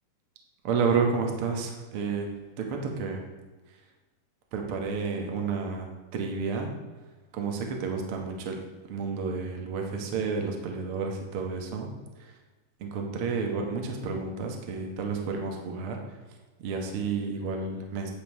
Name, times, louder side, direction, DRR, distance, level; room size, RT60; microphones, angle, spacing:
voice 1, 0.6-2.3 2.6-3.2 4.5-6.7 7.3-8.6 8.9-11.9 12.2-12.3 12.8-16.0 16.6-18.1, right 5 dB, 55° right, 2 dB, 1.7 m, -30 dB
10.5 x 5.6 x 5.4 m, 1.3 s
omnidirectional pair, 3.7 m